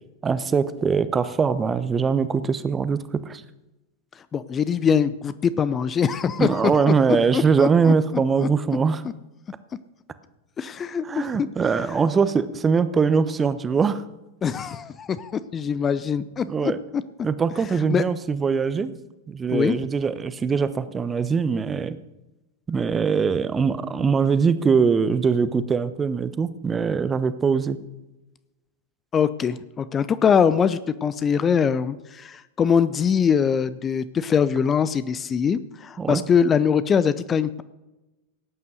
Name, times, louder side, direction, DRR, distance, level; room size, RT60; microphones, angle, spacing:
voice 1, 0.2-3.4 6.4-9.0 11.0-14.0 16.5-16.8 17.2-18.9 19.3-22.0 22.7-27.8 36.0-36.2, right 5 dB, 20° right, 14 dB, 1.0 m, -22 dB
voice 2, 4.3-6.8 7.3-7.9 8.4-8.5 10.6-11.5 14.4-17.0 17.9-18.0 19.5-19.8 29.1-37.6, left 7 dB, 20° left, 15 dB, 0.6 m, -23 dB
17.5 x 9.5 x 6.4 m, 1.0 s
figure-of-eight pair, 90°, 0 cm